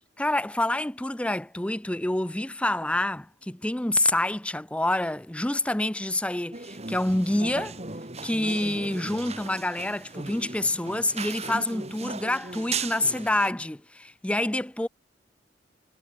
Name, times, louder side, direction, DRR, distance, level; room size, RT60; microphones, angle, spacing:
voice 1, 0.2-7.8 8.2-14.9, left 1 dB, 5° left, 0.5 m, -27 dB
sound 1, 6.5-13.5, right 4 dB, 35° right, 3.8 m, -37 dB
head